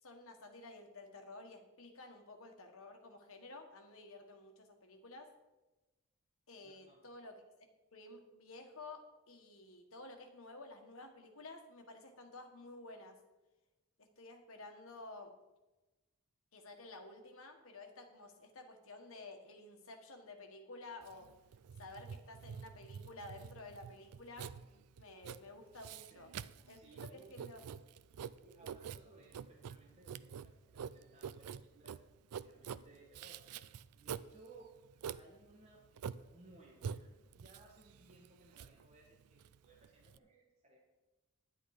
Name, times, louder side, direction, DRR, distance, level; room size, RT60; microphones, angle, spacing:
voice 1, 0.0-5.3 6.5-13.2 14.0-15.3 16.5-21.3 21.8-24.5 25.0-26.3 26.7-27.6, left 2 dB, 70° left, 4 dB, 1.6 m, -52 dB
voice 2, 6.6-7.0 26.1-26.3 26.6-27.4 28.4-32.0 32.4-34.7 35.1-40.8, right 2 dB, 30° right, -3 dB, 1.6 m, -62 dB
Writing, 21.0-40.2, right 7 dB, 90° right, 0.4 m, -47 dB
10.0 x 9.8 x 4.9 m, 1.1 s
head